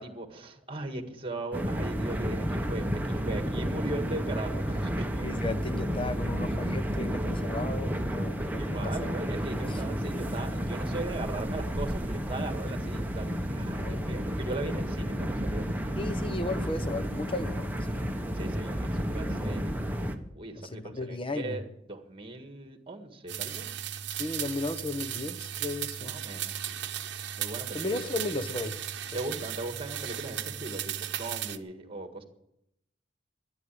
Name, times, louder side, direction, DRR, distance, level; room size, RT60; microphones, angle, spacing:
voice 1, 0.0-5.2 8.6-15.6 16.5-16.6 18.3-19.7 20.4-23.8 26.0-26.8 27.4-28.1 29.1-32.2, right 2 dB, 30° right, 1.7 m, -38 dB
sound 1, 1.5-20.2, equal, 10° right, 1.1 m, -31 dB
voice 2, 5.2-8.9 9.7-9.8 13.8-14.3 16.0-18.0 19.3-19.5 20.6-21.6 24.2-26.2 27.7-29.2, left 2 dB, 30° left, 1.0 m, -35 dB
sound 2, 23.3-31.6, right 10 dB, 65° right, 0.9 m, -36 dB
12.5 x 10.5 x 8.4 m
head